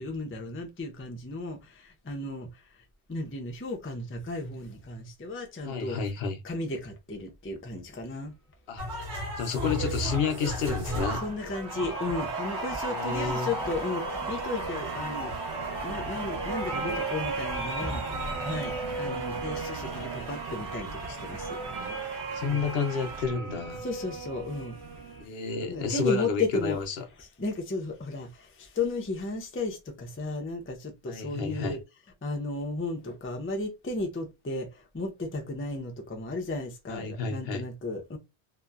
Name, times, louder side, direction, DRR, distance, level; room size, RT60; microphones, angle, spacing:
voice 1, 0.0-2.5 3.1-6.0 6.4-8.3 11.2-15.3 15.8-21.6 22.4-22.6 23.8-24.8 25.7-26.8 27.2-31.8 32.2-38.2, left 2 dB, 20° left, 0.4 m, -34 dB
voice 2, 5.6-6.4 8.7-8.8 9.4-11.2 12.9-13.5 21.8-21.9 22.3-23.8 25.2-27.0 31.1-31.8 36.9-37.6, left 5 dB, 70° left, 0.8 m, -30 dB
sound 1, 8.8-23.2, right 1 dB, 45° right, 1.2 m, -35 dB
sound 2, 10.9-25.2, right 4 dB, 75° right, 1.1 m, -37 dB
2.8 x 2.1 x 2.3 m
omnidirectional pair, 1.1 m